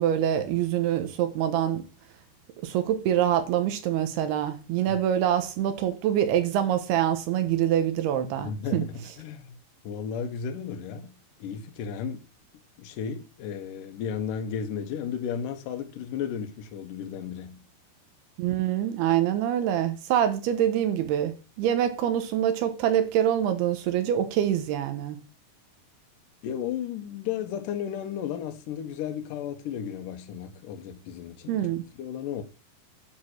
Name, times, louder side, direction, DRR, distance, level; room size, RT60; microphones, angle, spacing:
voice 1, 0.0-1.8 2.6-8.8 18.4-25.2 31.5-31.8, right 10 dB, 80° right, 3.1 m, -25 dB
voice 2, 8.4-9.6 9.8-12.2 12.8-17.7 26.4-31.6 32.0-32.4, left 8 dB, 70° left, 2.2 m, -34 dB
9.8 x 4.0 x 6.4 m
omnidirectional pair, 4.6 m